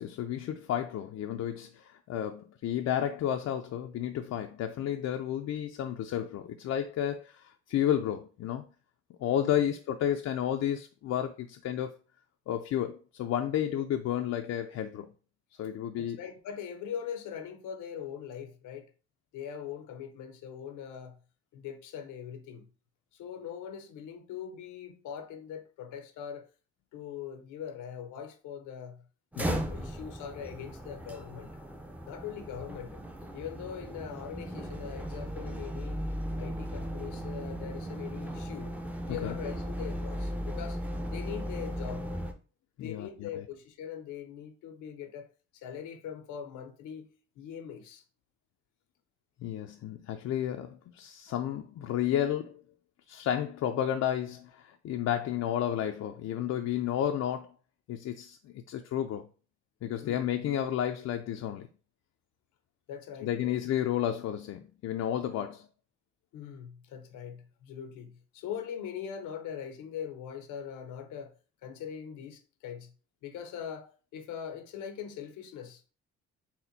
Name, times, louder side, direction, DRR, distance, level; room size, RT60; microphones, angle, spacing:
voice 1, 0.0-8.7 9.2-12.0 12.5-15.1 15.6-16.2 29.4-29.7 39.2-39.4 42.8-43.3 49.4-52.6 53.1-57.5 57.9-59.3 59.8-61.7 63.2-65.7, left 10 dB, 60° left, 0.4 m, -32 dB
voice 2, 16.0-18.9 19.3-21.2 21.5-22.7 23.1-26.5 26.9-29.1 29.7-31.6 32.0-33.0 33.3-36.0 36.4-38.8 39.1-40.8 41.1-42.1 42.8-47.1 47.4-48.0 60.0-60.3 62.9-63.6 66.3-71.3 71.6-72.9 73.2-75.8, left 8 dB, 85° left, 0.7 m, -41 dB
sound 1, 29.3-42.3, equal, 5° right, 0.5 m, -37 dB
4.2 x 2.1 x 4.0 m
cardioid pair, 90°, 30 cm